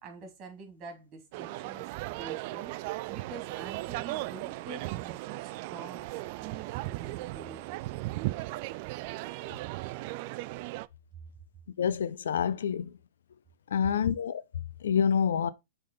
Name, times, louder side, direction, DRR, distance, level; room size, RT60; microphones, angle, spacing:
voice 1, 0.0-6.1 6.4-7.8, right 5 dB, 35° right, 2.7 m, -46 dB
sound 1, 1.3-10.9, right 19 dB, 50° right, 0.3 m, -37 dB
voice 2, 11.8-12.9 13.7-14.4 14.8-15.5, left 7 dB, 80° left, 0.5 m, -27 dB
6.4 x 3.8 x 5.3 m
hypercardioid pair, 125°, 0 cm